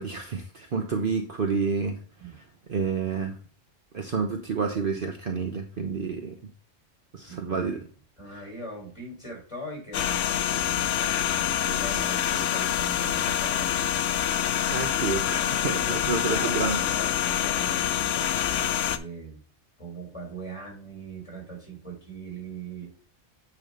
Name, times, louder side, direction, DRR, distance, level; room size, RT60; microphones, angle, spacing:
voice 1, 0.0-2.0 2.7-3.4 3.9-6.4 7.1-7.8 14.7-16.8, right 5 dB, 50° right, 4 dB, 0.9 m, -29 dB
voice 2, 7.3-7.8 8.2-10.9 11.2-14.3 15.3-18.3 18.6-19.4 19.8-22.9, right 2 dB, 25° left, -2 dB, 4.0 m, -41 dB
sound 1, 9.9-19.0, left 11 dB, 75° left, 0.9 m, -26 dB
9.2 x 3.2 x 5.2 m, 0.42 s
omnidirectional pair, 1.3 m